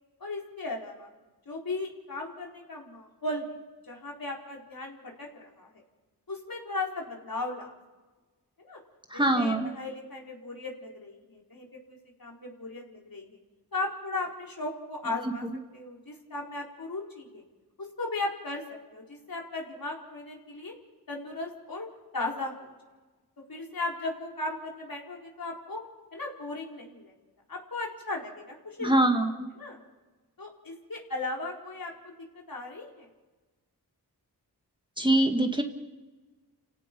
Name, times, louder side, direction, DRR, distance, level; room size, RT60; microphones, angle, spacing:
voice 1, 0.2-1.1 1.5-5.8 6.3-7.7 8.7-8.8 9.1-13.3 13.7-15.4 15.7-17.4 18.0-18.6 18.9-20.7 21.1-21.9 22.1-22.7 23.5-25.8 26.1-27.1 27.5-29.0 29.6-29.8 30.4-33.1, left 2 dB, 60° left, -1 dB, 4.5 m, -36 dB
voice 2, 9.1-9.7 28.8-29.5 35.0-35.6, right 1 dB, 10° right, 4 dB, 2.0 m, -23 dB
29.0 x 17.0 x 5.4 m, 1.2 s
cardioid pair, 45°, 39 cm